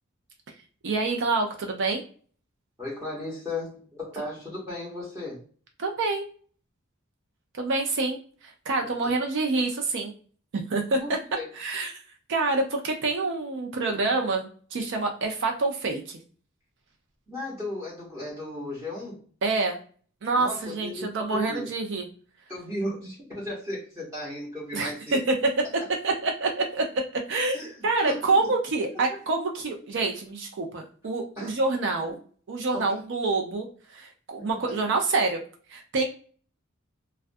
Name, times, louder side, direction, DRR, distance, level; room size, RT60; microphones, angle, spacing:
voice 1, 0.8-2.0 5.8-6.3 7.5-10.1 10.5-11.2 11.5-12.0 12.3-16.2 19.4-19.8 20.2-22.1 24.7-25.5 26.0-26.9 27.1-27.6 27.8-32.1 32.5-35.4 35.7-36.0, right 3 dB, 60° right, 3 dB, 0.5 m, -27 dB
voice 2, 2.8-5.4 9.0-9.1 11.0-11.5 17.3-19.2 20.4-21.7 22.5-25.2 27.5-27.7 28.0-28.3 31.4-31.5 32.1-32.2 32.7-32.9, left 1 dB, 15° right, -5 dB, 0.9 m, -35 dB
2.4 x 2.1 x 2.5 m, 0.43 s
head